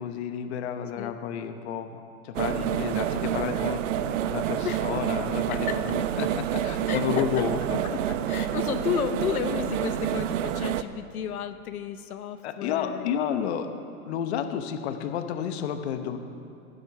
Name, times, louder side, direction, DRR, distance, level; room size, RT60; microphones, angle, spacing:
voice 1, 0.0-7.6 7.9-8.0 12.4-13.7 14.1-16.2, left 8 dB, 45° left, 8 dB, 1.0 m, -31 dB
sound 1, 2.3-10.8, right 11 dB, 60° right, 0.7 m, -28 dB
voice 2, 5.5-6.0 6.9-7.4 8.1-13.2, left 9 dB, 75° left, 9 dB, 0.9 m, -32 dB
17.5 x 7.9 x 5.9 m, 2.9 s
hypercardioid pair, 150°, 44 cm